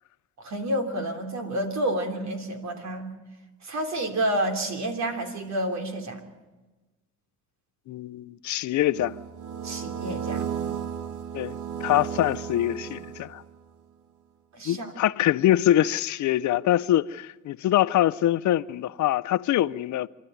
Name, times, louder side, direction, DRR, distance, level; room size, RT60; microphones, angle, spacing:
voice 1, 0.4-3.1 3.6-6.2 9.6-10.5 14.6-14.9, right 1 dB, 65° right, 3.3 m, -29 dB
voice 2, 7.9-9.2 11.3-13.4 14.6-20.1, left 13 dB, 70° left, 0.6 m, -24 dB
sound 1, 8.9-13.6, right 8 dB, 90° right, 1.4 m, -34 dB
27.5 x 12.5 x 9.3 m
cardioid pair, 90°, 30 cm